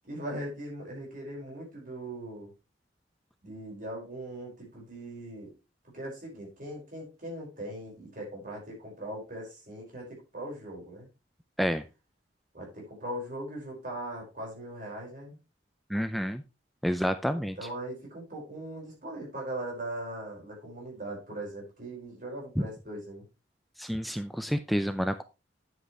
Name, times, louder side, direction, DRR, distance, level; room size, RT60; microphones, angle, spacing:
voice 1, 0.0-2.5 3.4-5.5 5.8-11.1 12.5-15.4 17.3-23.3, right 1 dB, 50° right, -2 dB, 5.3 m, -40 dB
voice 2, 15.9-16.4 16.8-17.6 22.6-22.7 23.8-25.2, equal, ahead, 10 dB, 0.4 m, -29 dB
9.8 x 8.1 x 3.2 m, 0.28 s
head